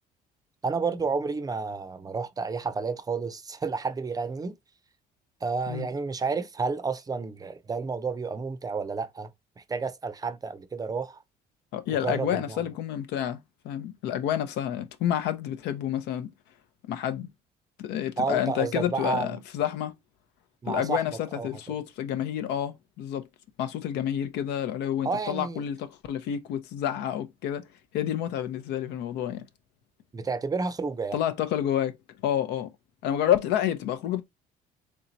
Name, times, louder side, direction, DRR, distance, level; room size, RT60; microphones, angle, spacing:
voice 1, 0.6-4.6 5.4-9.3 9.6-11.2 11.9-12.6 18.2-19.4 20.6-21.0 21.3-21.5 25.0-25.6 30.1-31.2, right 4 dB, 20° right, 0.5 m, -31 dB
voice 2, 11.7-13.4 13.6-16.3 16.9-17.3 17.8-19.9 20.7-23.3 23.6-27.6 27.9-29.5 31.1-32.0 32.2-32.7 33.0-34.2, left 10 dB, 85° left, 0.7 m, -29 dB
3.4 x 2.7 x 4.0 m
cardioid pair, 110°, 17 cm